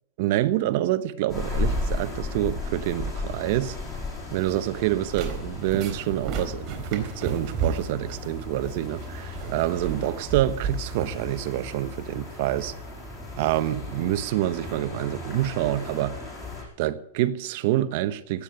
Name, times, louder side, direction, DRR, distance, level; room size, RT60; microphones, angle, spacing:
voice 1, 0.2-3.8 4.3-12.7 13.4-16.1 16.8-18.4, right 14 dB, 55° right, 1.1 m, -27 dB
sound 1, 1.3-16.6, left 3 dB, 20° left, 6.8 m, -35 dB
sound 2, 4.7-12.2, right 6 dB, 35° right, 4.0 m, -34 dB
17.5 x 8.7 x 9.1 m
supercardioid pair, 145°, 0 cm